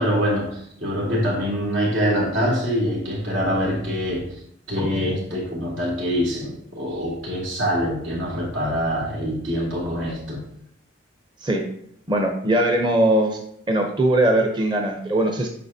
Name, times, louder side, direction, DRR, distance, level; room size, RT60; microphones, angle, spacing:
voice 1, 0.0-4.3 4.7-10.4, equal, 85° right, -3 dB, 2.7 m, -24 dB
voice 2, 12.1-13.4 13.7-15.5, right 1 dB, 25° right, 2 dB, 0.7 m, -20 dB
8.4 x 5.9 x 2.7 m, 0.72 s
head